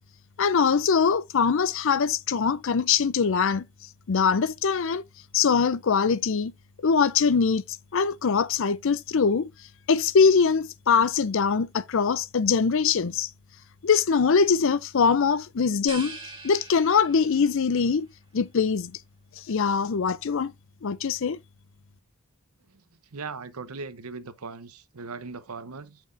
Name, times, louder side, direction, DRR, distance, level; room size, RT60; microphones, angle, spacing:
voice 1, 0.4-3.7 4.1-5.0 5.3-6.5 6.8-7.6 7.9-9.5 9.9-13.3 13.8-16.2 16.4-18.1 18.3-18.9 19.4-20.5 20.8-21.4, left 5 dB, 60° left, 0.5 m, -22 dB
sound 1, 15.9-17.6, right 3 dB, 25° right, 1.6 m, -41 dB
voice 2, 23.1-26.0, right 4 dB, 85° right, 0.9 m, -39 dB
8.7 x 5.8 x 2.6 m
head